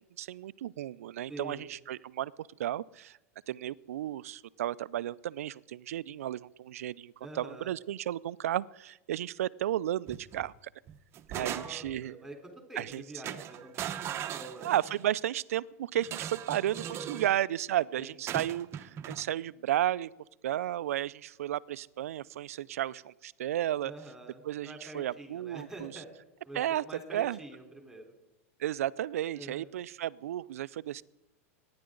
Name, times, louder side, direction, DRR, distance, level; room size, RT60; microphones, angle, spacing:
voice 1, 0.0-3.2 3.5-10.5 11.3-12.2 12.8-13.0 14.6-20.1 20.4-23.9 24.4-25.9 26.5-26.8 27.1-27.4 28.6-31.0, right 12 dB, 85° right, 19 dB, 0.4 m, -33 dB
voice 2, 1.3-1.7 7.2-7.7 11.4-14.0 14.3-14.7 16.8-17.3 18.0-18.2 23.8-26.1 26.5-28.1 29.4-29.7, right 1 dB, ahead, 2 dB, 3.8 m, -46 dB
sound 1, 10.1-10.5 10.9-12.0 12.8-13.0 13.2-15.1 16.0-17.4 18.3-19.3, right 10 dB, 35° right, 0.8 m, -39 dB
23.5 x 10.5 x 3.9 m, 0.98 s
hypercardioid pair, 120°, 8 cm